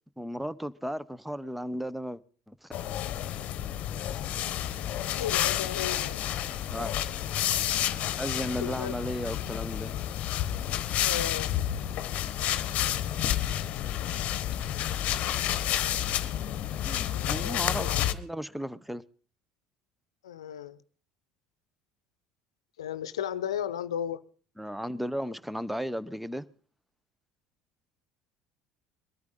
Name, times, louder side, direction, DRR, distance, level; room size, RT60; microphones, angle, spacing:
voice 1, 0.2-2.2 2.5-2.7 6.7-6.9 8.2-9.9 16.7-19.0 24.6-26.5, equal, 5° right, 0.8 m, -35 dB
sound 1, 2.7-18.1, left 11 dB, 55° left, 1.0 m, -30 dB
voice 2, 5.1-6.2 8.6-8.9 11.0-11.5 17.1-18.1 20.2-20.8 22.8-24.2, left 9 dB, 85° left, 0.7 m, -35 dB
22.5 x 13.0 x 3.8 m
hypercardioid pair, 70°, 3 cm